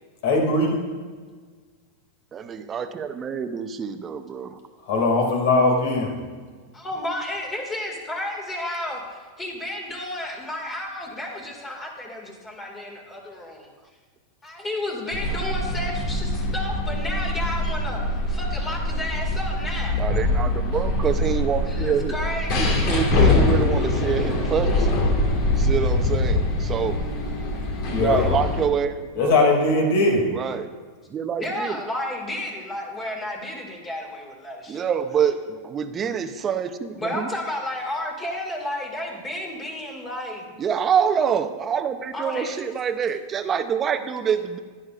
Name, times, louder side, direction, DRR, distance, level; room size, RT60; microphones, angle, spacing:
voice 1, 0.2-0.8 4.8-6.2 27.9-28.3 29.2-30.2, left 2 dB, 70° left, 1 dB, 2.4 m, -20 dB
voice 2, 2.3-4.6 19.9-22.2 22.6-25.0 25.5-27.0 27.9-28.9 29.2-29.3 30.3-30.7 31.1-31.8 34.7-37.3 40.6-44.6, right 7 dB, 25° right, 10 dB, 0.6 m, -26 dB
voice 3, 6.8-9.0 9.4-13.7 14.4-18.0 18.3-20.0 21.7-22.9 28.2-28.3 31.4-34.9 36.9-40.5 42.1-42.6, left 1 dB, 20° left, 0 dB, 2.1 m, -32 dB
sound 1, 15.1-28.7, left 2 dB, 50° left, 1.8 m, -23 dB
11.0 x 9.9 x 2.5 m, 1.5 s
hypercardioid pair, 115°, 0 cm